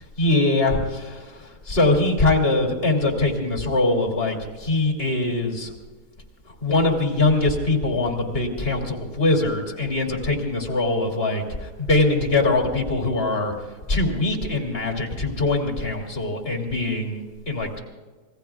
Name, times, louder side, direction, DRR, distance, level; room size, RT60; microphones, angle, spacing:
voice 1, 0.2-5.7 6.6-13.5 13.9-17.8, left 2 dB, 35° left, 1 dB, 2.9 m, -22 dB
26.5 x 20.5 x 2.4 m, 1.4 s
omnidirectional pair, 1.8 m